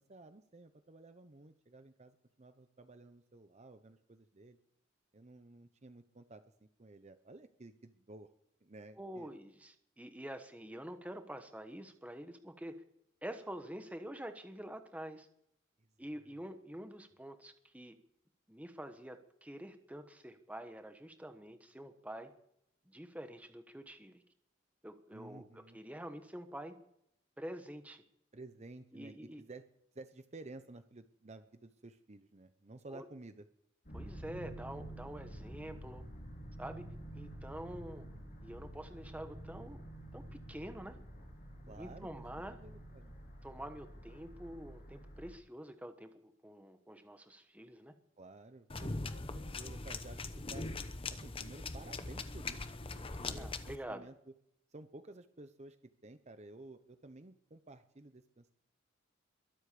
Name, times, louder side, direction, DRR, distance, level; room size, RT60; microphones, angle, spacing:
voice 1, 0.0-4.6 5.1-8.3 8.6-9.3 25.1-25.8 28.3-29.6 29.9-33.5 41.7-42.2 42.6-43.1 48.2-50.2 50.5-50.7 51.1-52.6 52.9-54.3 54.7-55.8 56.0-58.5, right 2 dB, 35° right, 9 dB, 0.8 m, -53 dB
voice 2, 9.0-12.7 13.2-15.3 16.0-17.9 18.5-22.3 22.9-24.2 24.8-26.7 27.4-28.0 28.9-29.4 32.9-33.0 33.9-36.0 36.6-36.9 37.1-38.1 38.4-39.8 40.1-41.0 41.6-42.6 43.4-47.9 53.4-54.1, right 1 dB, 5° right, 7 dB, 1.2 m, -47 dB
sound 1, 33.8-45.3, right 1 dB, 45° left, 3.2 m, -49 dB
sound 2, 48.7-53.8, left 3 dB, 30° left, 0.9 m, -41 dB
22.5 x 8.2 x 6.8 m, 0.74 s
head